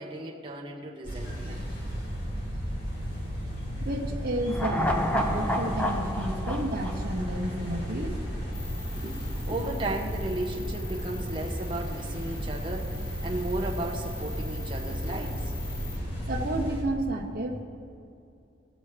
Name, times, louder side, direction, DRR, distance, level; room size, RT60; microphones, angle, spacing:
voice 1, 0.0-1.6 8.9-15.5, right 2 dB, 25° right, -2 dB, 1.0 m, -35 dB
sound 1, 1.0-16.8, equal, 60° left, 2.2 m, -34 dB
voice 2, 3.8-8.2 16.3-17.6, right 1 dB, 50° right, -1 dB, 0.9 m, -31 dB
sound 2, 4.5-7.9 8.2-8.3, left 1 dB, 10° left, 0.6 m, -30 dB
sound 3, 8.5-16.0, left 2 dB, 85° left, 1.2 m, -43 dB
17.0 x 7.1 x 3.3 m, 2.5 s
head